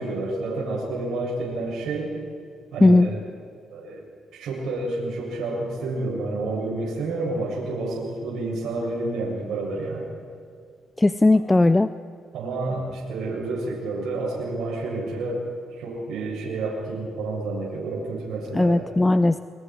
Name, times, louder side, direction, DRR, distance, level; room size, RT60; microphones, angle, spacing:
voice 1, 0.0-2.1 2.7-3.2 3.7-4.1 4.3-10.1 12.3-15.4 15.8-18.9, right 2 dB, 80° right, -4 dB, 7.3 m, -29 dB
voice 2, 2.8-3.1 11.0-11.9 18.5-19.4, left 2 dB, 15° left, 13 dB, 0.6 m, -17 dB
29.0 x 24.5 x 4.7 m, 2.4 s
cardioid pair, 90°, 0 cm